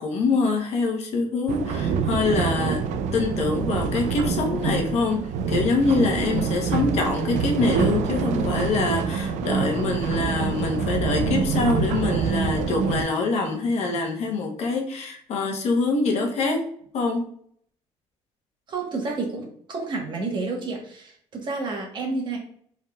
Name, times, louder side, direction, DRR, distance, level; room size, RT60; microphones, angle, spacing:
voice 1, 0.0-2.8 3.1-16.7 16.9-17.2, left 3 dB, 65° left, 2 dB, 1.0 m, -25 dB
sound 1, 1.5-13.0, right 6 dB, 90° right, 0.5 m, -26 dB
voice 2, 18.7-22.4, right 3 dB, 40° right, 1 dB, 1.2 m, -30 dB
5.0 x 3.7 x 2.3 m, 0.63 s
cardioid pair, 140°, 12 cm